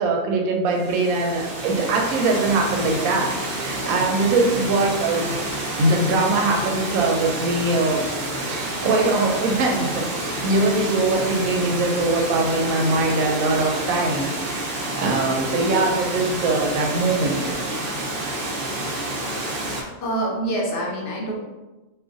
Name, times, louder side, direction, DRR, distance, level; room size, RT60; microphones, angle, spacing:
voice 1, 0.0-5.4 5.8-8.1 8.5-17.5 18.2-18.5, right 2 dB, 75° right, 1 dB, 1.0 m, -22 dB
Water, 0.7-19.8, right 1 dB, 55° right, 0.6 m, -29 dB
voice 2, 20.0-21.3, right 1 dB, 65° left, -2 dB, 0.8 m, -25 dB
2.5 x 2.4 x 3.7 m, 1.1 s
omnidirectional pair, 1.5 m